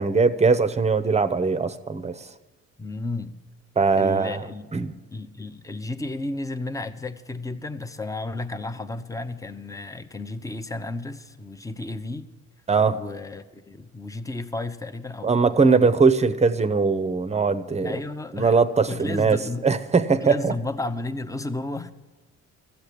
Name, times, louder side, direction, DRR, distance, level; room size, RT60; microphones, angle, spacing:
voice 1, 0.0-2.3 3.8-4.5 4.7-4.9 12.7-13.0 15.2-18.0 18.3-20.5, right 4 dB, 20° right, 13 dB, 0.8 m, -21 dB
voice 2, 2.8-3.4 3.9-4.7 5.1-12.3 12.9-16.0 17.8-18.6 18.9-19.7 20.1-21.9, left 2 dB, 10° left, 10 dB, 0.7 m, -33 dB
14.0 x 7.9 x 8.5 m, 1.3 s
cardioid pair, 90°, 30 cm